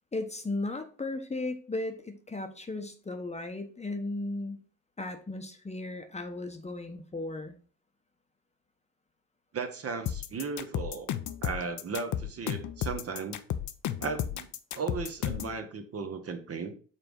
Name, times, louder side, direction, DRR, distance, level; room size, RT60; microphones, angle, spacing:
voice 1, 0.1-4.6 5.0-7.6, left 2 dB, 15° left, 6 dB, 1.0 m, -36 dB
voice 2, 9.5-11.1 11.4-13.4 14.0-14.5 14.7-16.7, right 5 dB, 40° right, 7 dB, 1.0 m, -36 dB
sound 1, 10.1-15.6, left 10 dB, 50° left, 0.7 m, -33 dB
5.8 x 3.5 x 5.3 m, 0.40 s
hypercardioid pair, 70°, 38 cm